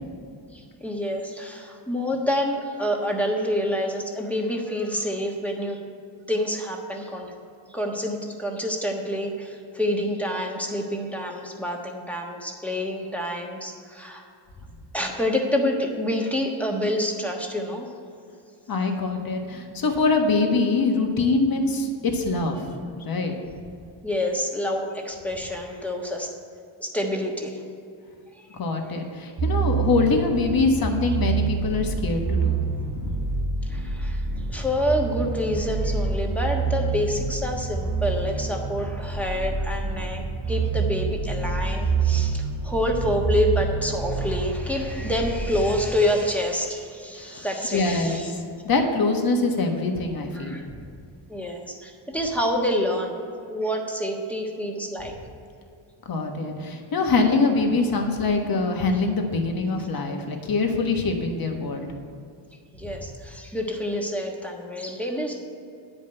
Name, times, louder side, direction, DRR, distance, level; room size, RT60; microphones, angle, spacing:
voice 1, 0.5-5.8 6.3-7.3 7.7-14.2 14.9-17.9 24.0-26.3 26.8-27.6 28.3-28.5 33.7-48.3 50.3-50.7 51.3-55.1 62.7-65.4, left 1 dB, 5° left, 0 dB, 1.3 m, -27 dB
voice 2, 18.7-22.7 23.0-23.3 28.6-32.6 32.9-33.2 47.1-47.4 47.7-50.6 56.1-61.9, left 3 dB, 50° left, 3 dB, 1.4 m, -24 dB
sound 1, 29.4-45.9, right 4 dB, 40° right, 1.1 m, -27 dB
9.8 x 5.3 x 7.7 m, 2.4 s
cardioid pair, 120°, 45 cm